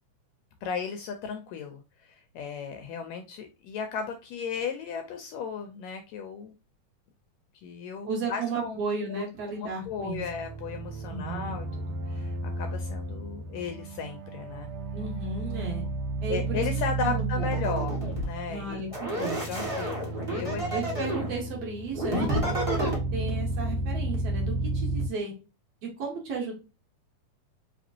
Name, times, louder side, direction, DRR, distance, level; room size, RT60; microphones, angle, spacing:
voice 1, 0.6-6.5 7.5-8.8 9.1-9.2 9.5-11.7 12.1-14.7 16.3-18.8 19.4-20.6, left 6 dB, 80° left, 6 dB, 1.6 m, -35 dB
voice 2, 8.1-10.2 11.1-11.5 14.9-15.8 16.2-16.6 17.0-17.5 18.5-19.4 20.7-25.3 25.8-26.5, right 3 dB, 60° right, -2 dB, 2.2 m, -34 dB
sound 1, 9.8-25.1, right 3 dB, 75° right, 1.6 m, -33 dB
sound 2, 17.4-18.3 18.9-21.3 21.9-23.0, right 1 dB, 20° right, 0.8 m, -30 dB
5.0 x 2.9 x 2.7 m, 0.31 s
omnidirectional pair, 3.5 m